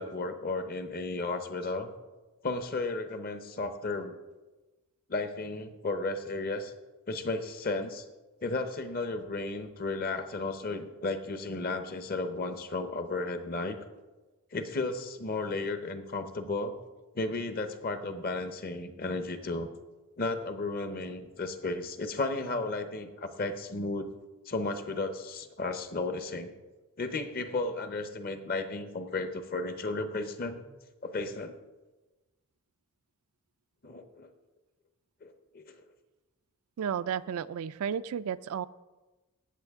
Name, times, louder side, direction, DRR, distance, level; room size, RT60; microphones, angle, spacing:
voice 1, 0.0-1.9 2.4-4.2 5.1-6.7 7.1-8.0 8.4-13.8 14.5-16.7 17.1-19.7 20.2-24.1 24.5-26.5 27.0-30.6 31.0-31.5 33.8-34.3 35.2-35.6, left 3 dB, 40° left, 9 dB, 0.8 m, -34 dB
voice 2, 36.8-38.7, right 8 dB, 75° right, 15 dB, 0.4 m, -33 dB
17.0 x 7.2 x 3.6 m, 1.2 s
head